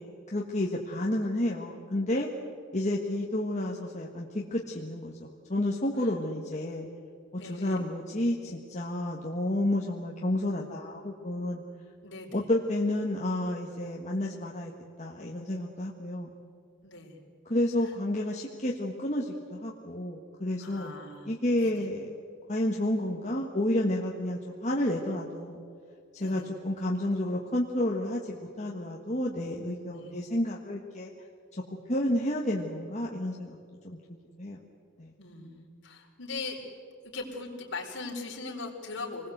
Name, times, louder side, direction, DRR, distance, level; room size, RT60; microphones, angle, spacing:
voice 1, 0.0-2.3 2.7-6.9 7.3-11.6 12.3-14.7 15.0-16.3 17.4-20.9 21.2-22.1 22.5-25.6 26.1-31.1 31.9-33.6 33.8-34.0 34.4-34.6 35.0-35.1, left 1 dB, 35° left, -1 dB, 1.6 m, -30 dB
voice 2, 7.3-7.8 12.0-12.4 16.8-17.2 20.6-21.7 26.2-26.4 29.9-30.1 35.2-36.6 37.1-39.3, left 3 dB, 55° left, -1 dB, 4.5 m, -40 dB
27.5 x 20.5 x 8.0 m, 2.3 s
head